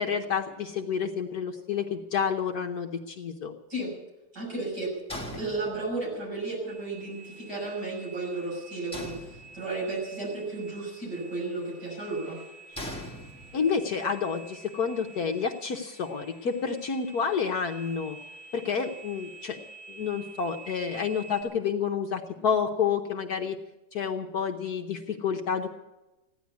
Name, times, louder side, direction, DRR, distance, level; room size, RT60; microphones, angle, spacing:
voice 1, 0.0-3.5 13.5-18.2 18.5-19.6 19.9-23.6 23.9-25.7, left 6 dB, 60° left, 3 dB, 1.3 m, -29 dB
voice 2, 4.3-4.9 5.2-12.4, right 2 dB, 55° right, -3 dB, 7.4 m, -33 dB
sound 1, 5.1-6.2 8.9-9.9 12.8-13.9, left 1 dB, 5° left, 1.5 m, -40 dB
sound 2, 6.7-21.4, right 4 dB, 75° right, 4.6 m, -49 dB
15.5 x 11.0 x 8.2 m, 1.0 s
omnidirectional pair, 2.1 m